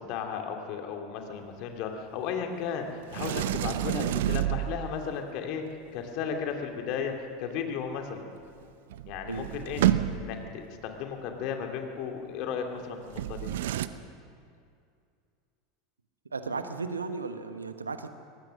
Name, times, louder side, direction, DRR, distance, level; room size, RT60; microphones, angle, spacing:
voice 1, 0.0-5.6 5.9-7.1 7.4-8.3 9.1-9.8 10.1-13.5, left 7 dB, 50° left, 4 dB, 2.5 m, -35 dB
Sliding door, 3.1-5.1 8.6-8.7 8.9-10.5 13.1-13.9, right 12 dB, 60° right, 0.7 m, -29 dB
voice 2, 16.3-18.1, right 4 dB, 80° right, 9 dB, 1.2 m, -35 dB
23.0 x 19.0 x 6.4 m, 2.4 s
figure-of-eight pair, 80°, 0 cm